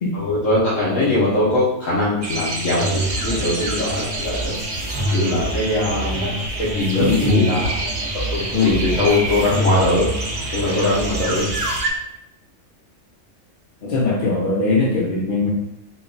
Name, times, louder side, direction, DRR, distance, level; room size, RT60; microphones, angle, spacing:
voice 1, 0.1-4.6 5.1-7.7 8.1-11.5, left 2 dB, 80° left, -8 dB, 1.3 m, -21 dB
sound 1, 2.2-11.9, right 2 dB, 50° right, 0.4 m, -28 dB
sound 2, 2.8-11.8, equal, 25° right, 1.0 m, -27 dB
voice 2, 6.9-7.5 8.5-8.8 13.8-15.5, left 3 dB, 55° left, -3 dB, 0.7 m, -20 dB
3.9 x 2.3 x 3.8 m, 0.83 s
omnidirectional pair, 1.3 m